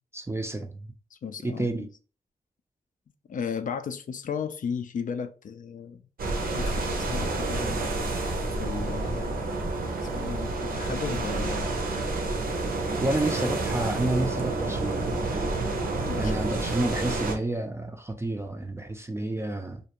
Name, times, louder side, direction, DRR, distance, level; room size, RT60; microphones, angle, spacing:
voice 1, 0.1-0.9 1.4-1.9 13.0-15.1 16.1-19.8, right 2 dB, 15° right, 0.4 m, -30 dB
voice 2, 1.1-1.9 3.3-6.0 6.6-7.8 8.6-9.4 10.1-11.7 16.0-16.3, left 6 dB, 60° left, 0.4 m, -35 dB
sound 1, 6.2-17.3, right 2 dB, 80° right, 0.6 m, -29 dB
2.5 x 2.1 x 2.9 m
cardioid pair, 55°, 15 cm